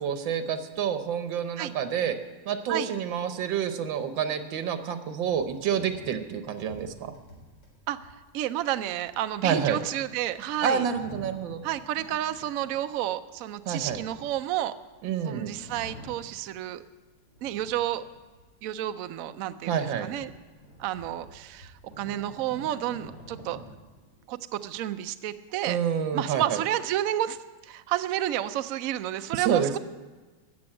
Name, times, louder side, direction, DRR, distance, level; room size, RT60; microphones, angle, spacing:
voice 1, 0.0-2.2 2.5-7.1 9.4-9.8 10.6-11.6 13.7-14.0 15.0-15.5 19.7-20.1 25.7-26.6 29.5-29.8, right 8 dB, 90° right, 9 dB, 1.7 m, -28 dB
sound 1, 5.3-15.0 15.4-16.8 17.3-18.6 19.1-19.2 19.6-24.7, equal, 75° left, 4.5 m, -49 dB
voice 2, 7.9-10.8 11.6-14.7 15.2-16.8 17.4-18.0 18.6-20.3 20.8-23.6 24.3-25.8 26.1-27.4 27.6-29.8, right 12 dB, 70° right, 11 dB, 0.8 m, -31 dB
15.0 x 7.0 x 8.7 m, 1.3 s
omnidirectional pair, 2.0 m